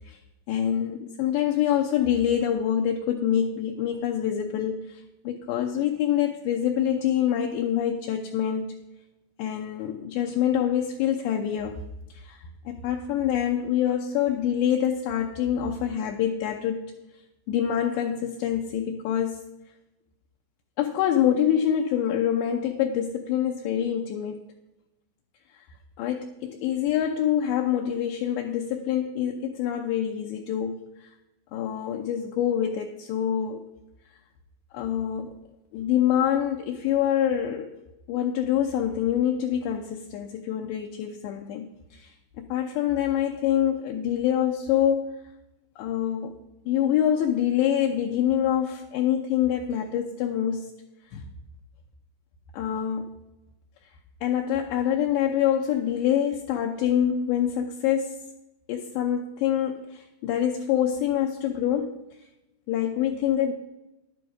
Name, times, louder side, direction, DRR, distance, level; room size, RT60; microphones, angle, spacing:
voice 1, 0.5-8.7 9.4-11.8 12.1-16.9 17.5-19.4 20.8-24.4 26.0-31.1 31.5-33.7 34.7-35.3 35.7-37.7 38.1-45.2 45.8-46.3 46.7-50.7 51.1-51.3 52.5-53.1 54.2-58.3 58.7-62.0 62.7-63.5, left 10 dB, 80° left, 2 dB, 2.6 m, -26 dB
11.5 x 9.4 x 4.8 m, 0.96 s
omnidirectional pair, 5.6 m